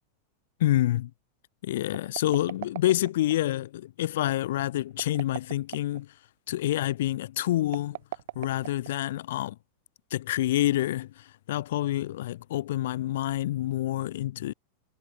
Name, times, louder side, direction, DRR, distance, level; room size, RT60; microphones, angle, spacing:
voice 1, 0.6-1.1 1.6-6.2 6.5-8.0 8.4-9.6 10.1-14.5, left 14 dB, 55° left, 0.5 m, -27 dB
sound 1, 1.9-3.4 4.9-6.0 7.6-9.2, right 16 dB, 55° right, 1.8 m, -39 dB
figure-of-eight pair, 90°, 0 cm